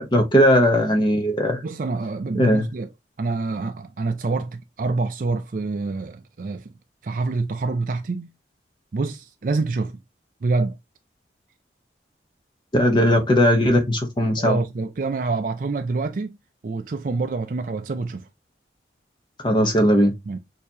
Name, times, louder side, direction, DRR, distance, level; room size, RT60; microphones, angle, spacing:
voice 1, 0.0-1.6 2.4-2.7 12.7-14.6 19.4-20.1, equal, 25° left, 0.7 m, -18 dB
voice 2, 1.6-2.9 3.2-6.7 7.0-8.3 8.9-10.0 10.4-10.8 14.4-16.4 16.6-18.3 20.3-20.4, right 3 dB, 45° right, 0.4 m, -26 dB
6.5 x 2.8 x 2.7 m
head